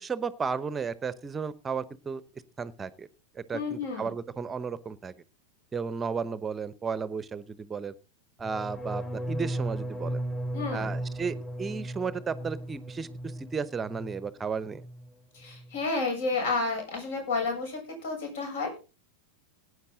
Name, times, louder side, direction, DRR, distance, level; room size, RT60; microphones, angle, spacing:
voice 1, 0.0-2.2 2.6-3.1 3.3-5.1 5.7-7.9 8.4-10.2 10.7-13.1 13.4-14.8, right 5 dB, 15° right, 18 dB, 0.9 m, -34 dB
voice 2, 3.5-4.1 10.5-10.9 15.3-18.8, left 3 dB, 55° left, 3 dB, 7.5 m, -31 dB
sound 1, 8.4-14.3 14.6-15.1 15.4-15.8, right 1 dB, 15° left, 2.4 m, -36 dB
17.5 x 9.7 x 3.9 m, 0.32 s
figure-of-eight pair, 90°, 0 cm